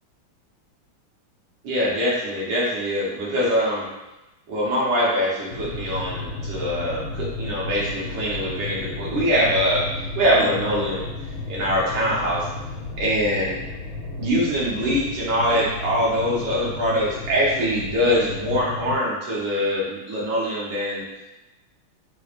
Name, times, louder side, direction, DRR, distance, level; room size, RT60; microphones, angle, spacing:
voice 1, 1.6-3.9 4.5-9.9 10.2-11.1 11.5-12.5 13.0-13.6 14.2-21.0, equal, 75° right, -6 dB, 1.7 m, -23 dB
sound 1, 5.5-19.0, left 2 dB, 70° left, 1.3 m, -33 dB
4.5 x 2.1 x 2.4 m, 1.0 s
omnidirectional pair, 2.3 m